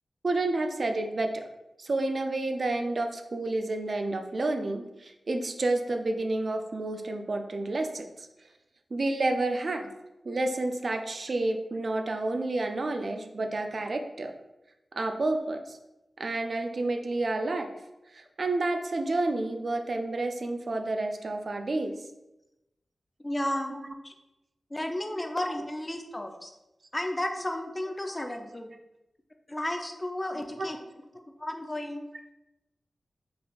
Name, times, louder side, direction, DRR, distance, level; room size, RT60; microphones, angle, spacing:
voice 1, 0.2-1.4 1.8-8.3 8.9-9.9 10.2-14.3 14.9-15.8 16.2-17.7 18.1-22.0 30.6-30.7, right 2 dB, 60° right, 6 dB, 0.4 m, -30 dB
voice 2, 23.2-23.8 24.0-24.1 24.7-26.5 26.9-28.7 29.5-30.8 31.4-32.1, left 1 dB, 25° left, 4 dB, 0.5 m, -33 dB
4.1 x 3.3 x 2.4 m, 0.94 s
cardioid pair, 50°, 0 cm